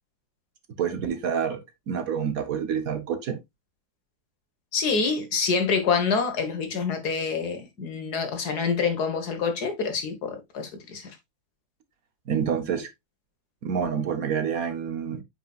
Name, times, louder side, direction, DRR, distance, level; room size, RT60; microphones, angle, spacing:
voice 1, 0.8-1.6 1.9-3.4 12.3-12.9 13.6-15.2, right 7 dB, 65° right, 1.4 m, -27 dB
voice 2, 4.7-11.1, left 5 dB, 75° left, 2.0 m, -26 dB
8.5 x 5.1 x 2.4 m
omnidirectional pair, 1.7 m